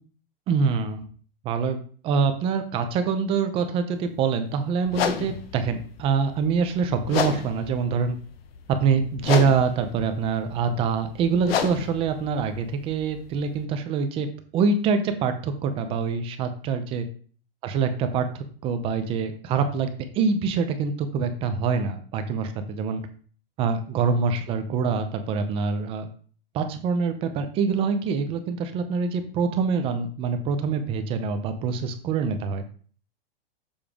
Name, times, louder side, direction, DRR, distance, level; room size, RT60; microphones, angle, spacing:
voice 1, 0.5-1.0 1.4-1.8 2.0-8.2 8.7-14.3 14.5-17.1 17.6-23.0 23.6-26.1 26.5-32.6, right 5 dB, 20° right, 8 dB, 0.5 m, -25 dB
sound 1, 4.9-13.6, left 8 dB, 80° left, 0.9 m, -32 dB
7.0 x 3.6 x 5.0 m, 0.44 s
supercardioid pair, 160°, 29 cm